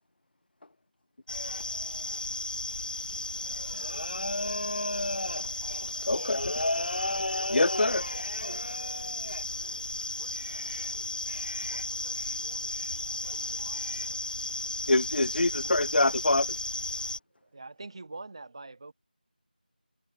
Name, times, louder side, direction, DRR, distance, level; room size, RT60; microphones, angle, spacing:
sound 1, 1.3-17.2, left 2 dB, 60° left, 0.9 m, -33 dB
voice 1, 3.8-4.4 5.3-6.5 7.9-13.9, right 9 dB, 10° right, 1.9 m, -59 dB
voice 2, 6.1-6.4 7.5-8.0 14.9-16.5, left 2 dB, 80° left, 0.4 m, -24 dB
voice 3, 17.4-18.9, right 3 dB, 35° right, 5.6 m, -43 dB
figure-of-eight pair, 175°, 5 cm